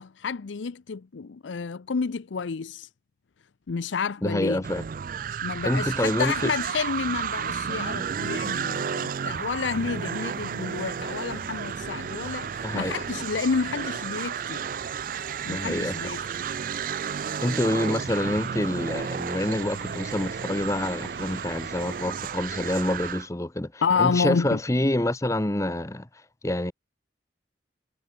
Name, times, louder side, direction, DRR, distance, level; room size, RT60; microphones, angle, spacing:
voice 1, 0.0-2.9 3.7-4.6 5.4-14.6 15.5-16.2 23.8-24.6, left 5 dB, 90° left, 0.6 m, -29 dB
voice 2, 4.2-4.8 5.6-6.5 12.6-13.0 15.5-16.0 17.4-26.1 26.4-26.7, left 1 dB, 15° left, 0.8 m, -27 dB
sound 1, 4.6-23.3, right 7 dB, 50° right, 0.4 m, -32 dB
sound 2, 6.6-22.1, right 4 dB, 80° right, 4.4 m, -47 dB
head